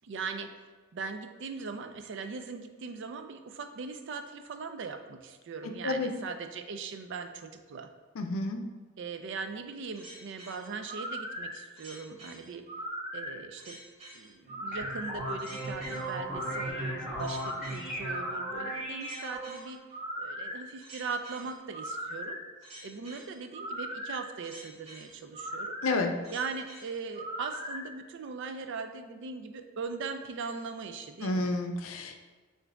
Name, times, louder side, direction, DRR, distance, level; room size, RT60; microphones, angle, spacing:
voice 1, 0.0-0.5 0.9-7.9 9.0-12.7 13.1-13.8 14.1-19.8 20.2-22.4 22.8-25.8 26.3-31.5, right 4 dB, 60° right, 7 dB, 0.4 m, -40 dB
voice 2, 8.2-8.6 25.8-26.1 31.2-32.2, left 2 dB, 90° left, 5 dB, 0.5 m, -30 dB
sound 1, 9.9-27.8, equal, 30° right, 1.3 m, -40 dB
sound 2, 14.4-19.7, right 1 dB, 5° right, 1.2 m, -37 dB
5.8 x 2.6 x 3.4 m, 1.3 s
head